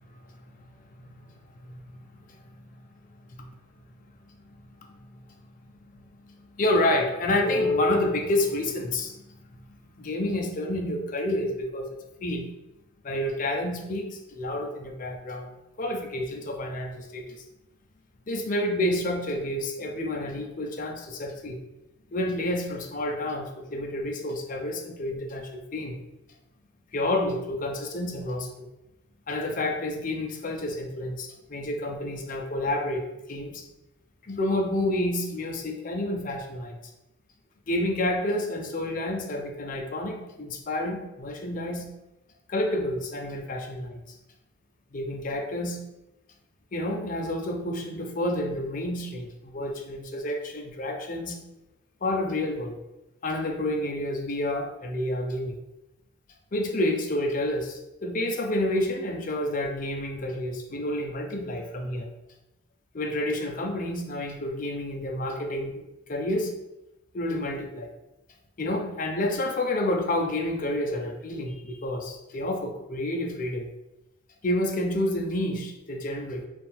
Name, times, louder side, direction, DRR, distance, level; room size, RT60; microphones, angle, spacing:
voice 1, 0.1-2.0 2.3-2.8 3.4-3.5 4.9-5.2 6.3-9.4 10.0-11.9 12.2-12.4 13.0-15.5 15.8-17.4 18.3-21.6 22.1-26.0 26.9-28.7 29.3-33.6 34.2-36.8 37.7-41.9 42.5-44.0 44.9-45.8 46.7-51.4 52.0-52.8 53.2-55.6 56.5-62.1 62.9-65.7 66.1-66.5 67.1-67.9 68.6-73.7 74.4-76.4, left 1 dB, 40° left, 3 dB, 0.5 m, -29 dB
3.7 x 2.5 x 4.2 m, 0.93 s
head